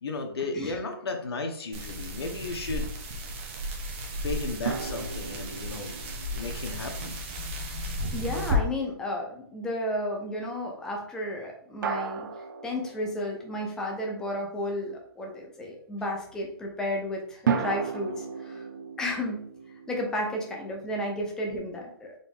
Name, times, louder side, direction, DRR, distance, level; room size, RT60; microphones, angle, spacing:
voice 1, 0.0-2.9 4.2-5.9 6.3-7.2, left 3 dB, 75° left, 4 dB, 1.1 m, -34 dB
sound 1, 1.7-8.6, equal, 30° right, 0.9 m, -34 dB
sound 2, 4.7-8.0 11.8-13.8 17.5-20.6, right 6 dB, 50° right, 0.5 m, -35 dB
voice 2, 8.1-12.3 12.6-18.7 19.0-19.4 19.9-22.1, left 1 dB, 5° left, 0 dB, 0.6 m, -32 dB
4.1 x 3.5 x 3.5 m, 0.64 s
hypercardioid pair, 165°, 13 cm